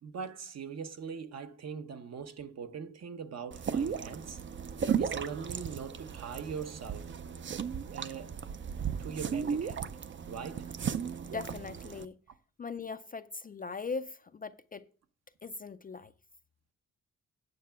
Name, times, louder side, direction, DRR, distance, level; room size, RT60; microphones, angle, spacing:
voice 1, 0.0-4.4 5.0-7.1 7.9-8.4 9.0-9.9 10.3-10.7, right 6 dB, 55° right, 0.9 m, -41 dB
sound 1, 3.5-12.1, right 7 dB, 40° right, 0.5 m, -35 dB
voice 2, 11.3-12.2 12.6-14.9 15.4-16.1, left 4 dB, 30° left, 0.4 m, -40 dB
9.4 x 6.6 x 5.6 m
wide cardioid pair, 175°, 32 cm